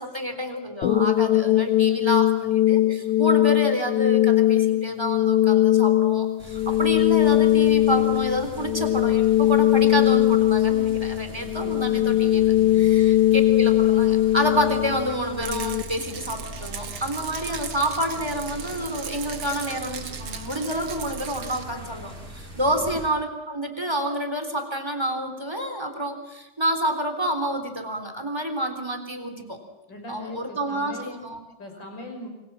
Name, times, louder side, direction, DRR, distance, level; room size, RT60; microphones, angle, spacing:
voice 1, 0.0-29.6 30.1-31.5, equal, 10° right, 6 dB, 3.4 m, -29 dB
sound 1, 0.8-15.8, left 14 dB, 75° left, 2.8 m, -20 dB
sound 2, 6.4-23.1, equal, 25° right, 6.7 m, -41 dB
voice 2, 11.3-12.1 12.6-12.9 22.7-22.8 29.9-31.2 31.6-32.3, left 1 dB, 35° left, 4 dB, 6.5 m, -40 dB
Rattle, 15.4-21.6, right 7 dB, 50° right, 2.1 m, -37 dB
28.0 x 25.5 x 7.6 m, 0.97 s
omnidirectional pair, 3.5 m